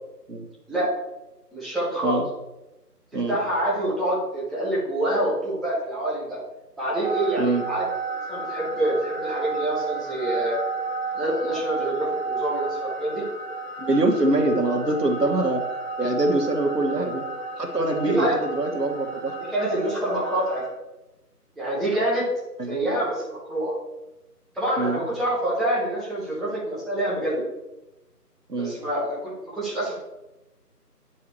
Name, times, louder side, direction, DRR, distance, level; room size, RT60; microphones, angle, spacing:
voice 1, 1.5-2.2 3.3-6.4 6.8-7.9 8.1-10.6 11.1-13.2 18.0-18.4 19.5-20.6 21.6-22.2 22.7-23.7 24.5-27.4 28.5-30.0, right 1 dB, ahead, -9 dB, 0.8 m, -26 dB
sound 1, 7.0-20.7, right 4 dB, 40° right, 0.9 m, -32 dB
voice 2, 13.8-15.6 16.0-17.3 17.6-19.3 22.6-22.8 24.8-25.0 28.5-28.7, right 2 dB, 80° right, 3 dB, 1.4 m, -24 dB
8.6 x 4.7 x 3.1 m, 0.97 s
figure-of-eight pair, 170°, 48 cm